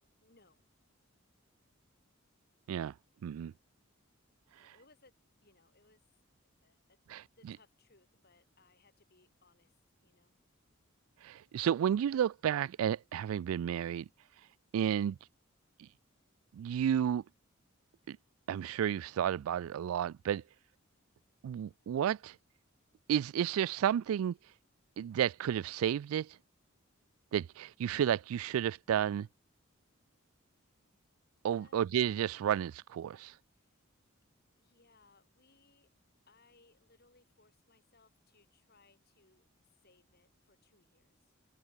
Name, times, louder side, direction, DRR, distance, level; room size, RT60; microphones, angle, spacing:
voice 1, 0.0-0.6 3.3-3.5 4.5-5.1 5.4-6.0 6.6-7.0 7.3-9.7 10.0-10.3 31.5-31.8 33.5-33.8 34.6-35.9 36.3-39.5 39.8-41.2, left 3 dB, 50° left, 4.6 m, -67 dB
voice 2, 3.2-3.5 7.1-7.2 11.2-14.1 14.7-15.2 15.8-15.9 16.5-17.2 18.1-18.2 18.5-20.4 21.4-22.4 23.1-24.4 25.0-26.4 27.3-29.3 31.4-33.3, right 9 dB, 85° right, 0.3 m, -32 dB
open air
head